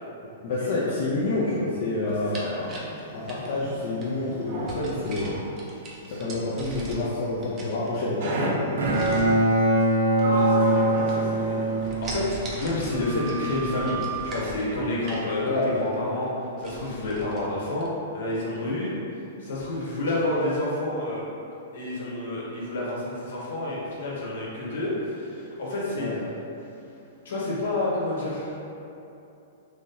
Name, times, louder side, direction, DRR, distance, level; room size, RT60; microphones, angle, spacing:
voice 1, 0.4-2.4 3.1-5.3 6.2-8.5 15.4-15.6 26.0-26.1, left 2 dB, 45° left, -8 dB, 0.5 m, -28 dB
voice 2, 2.0-2.6 10.2-11.6 12.0-17.9 18.1-18.9 19.4-21.2 21.7-26.1 27.2-28.6, left 2 dB, 70° left, -6 dB, 1.1 m, -29 dB
sound 1, 2.1-4.1 4.7-7.2 7.4-8.3 8.8-9.4 10.1-10.8 11.1-11.5 11.8-15.3 15.8-15.9 16.2-16.3 16.6-17.4 17.8-17.9, right 2 dB, 20° right, 0.5 m, -40 dB
Sliding door, 2.4-6.4 8.2-9.1 9.8-12.6 12.9-14.2, right 3 dB, 50° right, 0.8 m, -36 dB
Bowed string instrument, 8.3-12.5, right 1 dB, 80° right, 0.6 m, -22 dB
3.0 x 2.8 x 3.8 m, 2.8 s
hypercardioid pair, 165°, 0 cm